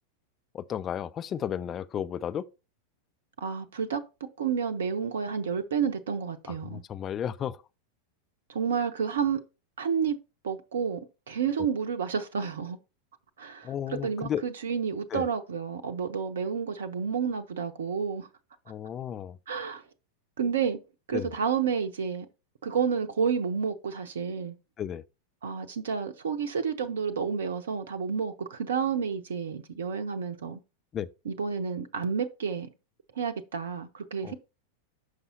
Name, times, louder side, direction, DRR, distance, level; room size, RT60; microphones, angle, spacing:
voice 1, 0.5-2.5 6.6-7.6 13.6-14.5 15.1-15.2 18.7-19.4 21.1-21.3 24.8-25.0 30.9-31.1 34.2-34.3, left 9 dB, 25° left, 0.4 m, -33 dB
voice 2, 3.4-4.0 4.4-6.8 8.5-9.4 9.8-10.2 10.4-11.0 11.3-12.8 13.4-18.3 19.5-19.8 20.4-20.8 21.1-22.3 22.6-24.5 25.4-30.6 31.2-32.7 33.2-34.4, right 6 dB, 65° right, 0.7 m, -30 dB
6.4 x 5.4 x 4.2 m
figure-of-eight pair, 90°, 0 cm